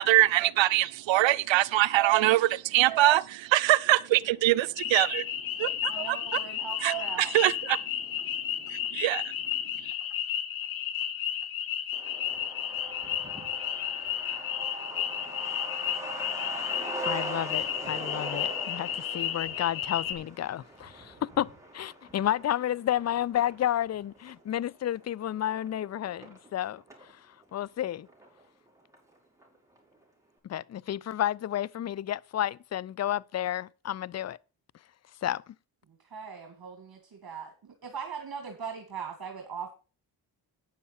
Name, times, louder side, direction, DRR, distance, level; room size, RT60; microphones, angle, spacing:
voice 1, 0.0-5.2 5.6-6.2 6.8-7.8 8.7-9.2, right 15 dB, 70° right, 0.7 m, -23 dB
sound 1, 4.8-20.1, left 10 dB, 80° left, 1.4 m, -33 dB
voice 2, 5.9-7.4 35.9-39.7, right 6 dB, 50° right, 2.2 m, -40 dB
Truck, 11.9-27.1 27.4-27.5 27.8-28.7 28.9-29.0 29.4-29.8, right 2 dB, 5° right, 5.5 m, -42 dB
voice 3, 17.1-27.1 27.5-28.1 30.4-34.4 35.2-35.5, left 11 dB, 35° left, 0.5 m, -31 dB
9.6 x 7.2 x 5.7 m
supercardioid pair, 45°, 47 cm